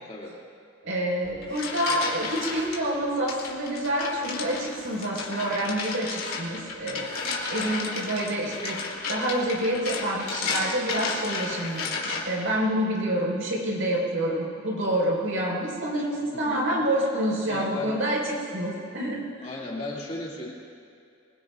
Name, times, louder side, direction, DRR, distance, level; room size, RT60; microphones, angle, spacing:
voice 1, 0.8-7.1 7.5-8.8 9.1-19.4, right 1 dB, 70° right, -4 dB, 5.0 m, -28 dB
sound 1, 1.2-2.8 3.3-12.5, left 4 dB, 85° left, 2.8 m, -33 dB
voice 2, 16.3-16.9 17.5-18.0 19.4-20.5, left 2 dB, 30° left, -4 dB, 2.5 m, -35 dB
25.5 x 21.0 x 2.5 m, 2.5 s
head